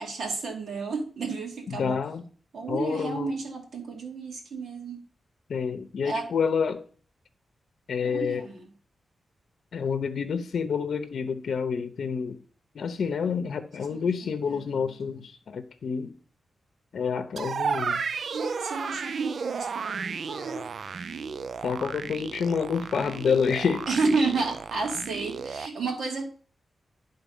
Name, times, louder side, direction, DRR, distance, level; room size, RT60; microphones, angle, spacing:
voice 1, 0.0-2.0 2.5-5.0 6.0-6.3 8.0-8.7 13.9-15.2 18.3-20.7 23.9-26.3, right 3 dB, 80° right, 2.2 m, -31 dB
voice 2, 1.7-2.2 2.7-3.3 5.5-6.8 7.9-8.5 9.7-12.4 12.7-16.1 16.9-18.0 21.6-23.9, left 6 dB, 70° left, 0.7 m, -28 dB
sound 1, 17.4-25.7, right 5 dB, 60° right, 0.3 m, -33 dB
11.0 x 3.9 x 5.4 m
wide cardioid pair, 125°, 0 cm